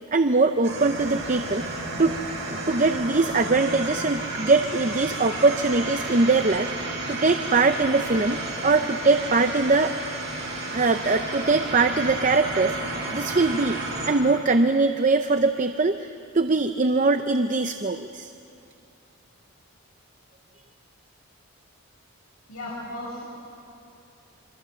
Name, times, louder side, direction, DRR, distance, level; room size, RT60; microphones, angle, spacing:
voice 1, 0.1-2.2 2.4-10.1 10.7-18.3, right 3 dB, 35° right, 8 dB, 0.6 m, -22 dB
sound 1, 0.6-14.1, right 2 dB, 50° right, 5.9 m, -32 dB
voice 2, 22.5-23.2, left 1 dB, 80° left, -7 dB, 6.0 m, -35 dB
27.0 x 24.0 x 7.8 m, 2.6 s
head